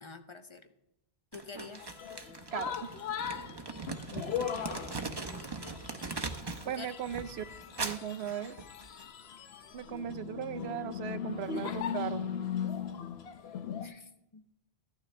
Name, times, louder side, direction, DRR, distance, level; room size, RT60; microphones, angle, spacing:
voice 1, 0.0-0.7 1.3-1.9 6.7-7.0 13.8-14.4, left 4 dB, 30° left, 8 dB, 0.7 m, -47 dB
Crumpling crinkling, 1.3-6.7 7.0-9.0, right 3 dB, 25° right, 0.7 m, -40 dB
sound 1, 1.8-13.9, left 8 dB, 75° left, 1.0 m, -39 dB
voice 2, 2.5-2.9 6.6-7.5 7.8-8.6 9.7-12.3, right 9 dB, 75° right, 12 dB, 0.9 m, -37 dB
15.0 x 11.5 x 3.3 m, 0.88 s
omnidirectional pair, 1.1 m